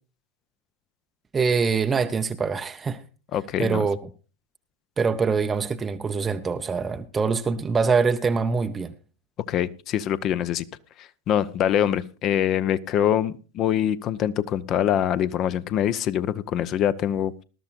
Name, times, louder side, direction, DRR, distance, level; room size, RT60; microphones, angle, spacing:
voice 1, 1.3-3.0 3.6-4.0 5.0-8.9, right 5 dB, 15° right, 0.5 m, -24 dB
voice 2, 3.3-3.9 9.5-10.6 11.3-17.3, left 10 dB, 35° left, 0.5 m, -24 dB
20.0 x 12.5 x 2.5 m
figure-of-eight pair, 90°, 0 cm